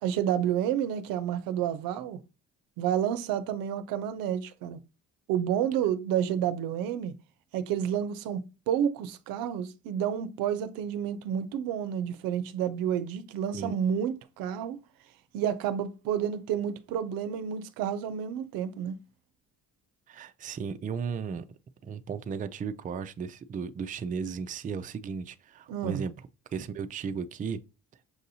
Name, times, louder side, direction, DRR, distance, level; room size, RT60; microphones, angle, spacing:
voice 1, 0.0-2.2 2.8-4.8 5.3-7.1 7.5-14.8 15.3-19.0 25.7-26.0, right 9 dB, 85° right, 0.5 m, -30 dB
voice 2, 20.1-21.5 21.8-26.1 26.5-27.6, right 6 dB, 25° right, 0.3 m, -35 dB
6.1 x 2.7 x 2.7 m
cardioid pair, 80°, 33 cm